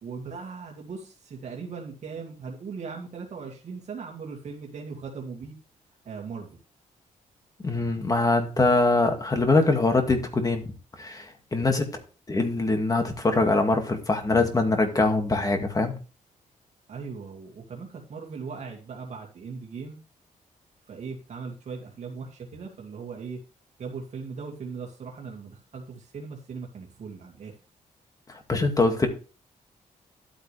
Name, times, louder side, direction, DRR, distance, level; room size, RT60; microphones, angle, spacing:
voice 1, 0.0-5.5 6.0-6.6 16.9-20.0 20.9-23.4 23.8-27.5, right 5 dB, 55° right, 0 dB, 2.4 m, -39 dB
voice 2, 7.6-10.6 11.0-11.9 12.3-15.9 28.3-29.1, left 3 dB, 25° left, 5 dB, 2.2 m, -23 dB
11.5 x 8.9 x 3.4 m, 0.34 s
cardioid pair, 110°, 14 cm